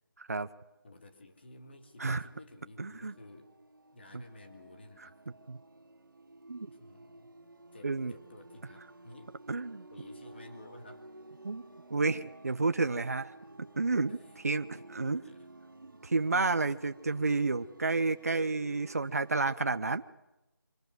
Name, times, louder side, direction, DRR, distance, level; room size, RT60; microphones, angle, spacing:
voice 1, 0.2-0.5 2.0-2.3 2.8-3.1 4.1-4.2 5.5-5.6 6.5-6.7 7.8-8.1 9.5-9.8 11.4-11.6 11.9-13.3 13.8-14.2 14.4-15.2 15.8-20.0, right 3 dB, 45° right, 11 dB, 0.8 m, -30 dB
voice 2, 0.8-3.5 3.9-5.2 6.7-7.3 7.7-9.4 9.9-11.0 14.1-14.3 14.8-14.9 15.2-15.5, left 2 dB, 30° left, 4 dB, 2.5 m, -53 dB
sound 1, 1.4-19.5, right 2 dB, 65° right, 2.5 m, -54 dB
25.0 x 20.0 x 7.9 m, 0.94 s
figure-of-eight pair, 175°, 12 cm